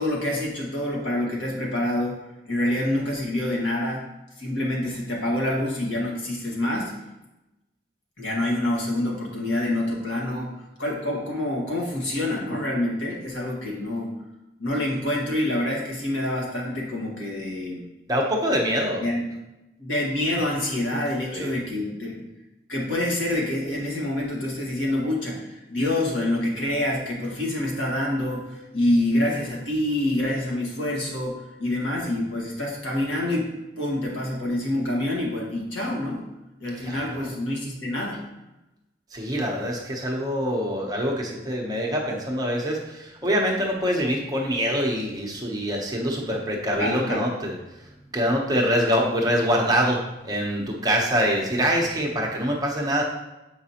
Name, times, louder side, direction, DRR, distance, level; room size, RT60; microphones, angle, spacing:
voice 1, 0.0-2.2 2.5-4.1 4.4-7.0 8.2-10.5 10.8-14.1 14.6-17.8 19.0-19.2 19.8-22.3 22.7-33.5 33.8-36.2 36.6-38.2 46.7-47.3, left 1 dB, 80° left, -3 dB, 1.6 m, -26 dB
voice 2, 18.1-19.0 21.3-21.5 36.8-37.3 39.1-47.6 48.1-53.0, equal, 20° right, -1 dB, 0.7 m, -25 dB
7.1 x 4.9 x 2.9 m, 0.98 s
head